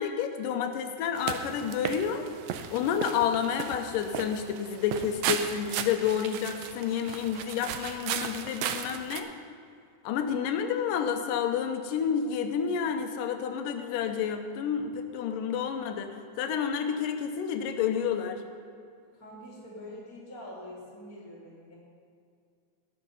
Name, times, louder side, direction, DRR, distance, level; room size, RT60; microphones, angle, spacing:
voice 1, 0.0-2.3 2.7-9.3 10.0-18.4, left 8 dB, 85° left, 7 dB, 2.5 m, -30 dB
sound 1, 1.2-9.2, right 9 dB, 75° right, 1.7 m, -36 dB
voice 2, 19.1-21.8, left 1 dB, 5° left, -5 dB, 2.4 m, -45 dB
18.0 x 6.6 x 5.4 m, 2.3 s
omnidirectional pair, 3.8 m